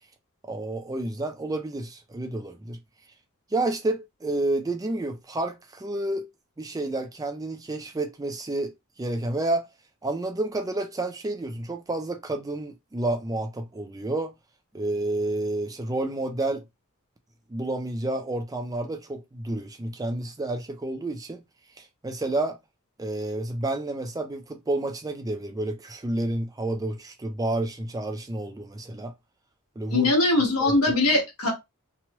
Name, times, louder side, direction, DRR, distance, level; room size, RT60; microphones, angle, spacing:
voice 1, 0.4-2.8 3.5-6.3 6.6-9.7 10.0-14.3 14.7-16.6 17.5-21.4 21.8-22.6 23.0-29.1 29.8-30.1 30.6-30.7, right 2 dB, 15° right, 0.4 m, -30 dB
voice 2, 29.9-31.5, left 2 dB, 80° left, 1.3 m, -21 dB
3.0 x 2.3 x 2.9 m
head